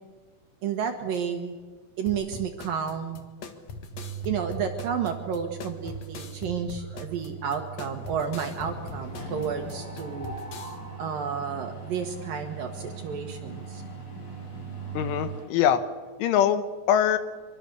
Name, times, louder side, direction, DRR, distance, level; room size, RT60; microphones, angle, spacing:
voice 1, 0.6-1.6 2.0-3.2 4.2-10.3 11.0-13.8, right 7 dB, 60° right, 4 dB, 2.6 m, -31 dB
sound 1, 2.1-10.7, left 4 dB, 60° left, 1.8 m, -42 dB
sound 2, 3.9-15.4, right 12 dB, 75° right, 3.3 m, -41 dB
Mechanisms, 5.9-6.5 6.8-7.0 7.3-15.4, left 2 dB, 45° left, 7.9 m, -43 dB
voice 2, 15.0-15.8 16.2-17.2, left 9 dB, 80° left, 11 dB, 3.7 m, -23 dB
25.0 x 24.0 x 7.0 m, 1.4 s
omnidirectional pair, 5.6 m